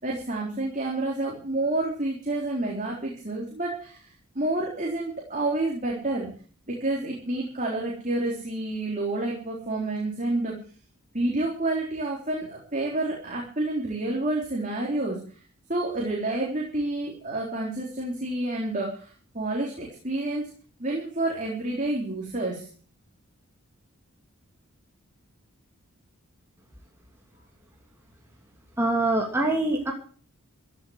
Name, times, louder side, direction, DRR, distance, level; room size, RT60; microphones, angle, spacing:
voice 1, 0.0-4.1 4.3-6.3 6.7-10.6 11.1-15.2 15.7-20.5 20.8-22.7, right 2 dB, 35° right, -2 dB, 3.9 m, -29 dB
voice 2, 28.8-29.9, right 2 dB, 10° right, -1 dB, 2.7 m, -24 dB
16.0 x 8.3 x 8.0 m, 0.42 s
head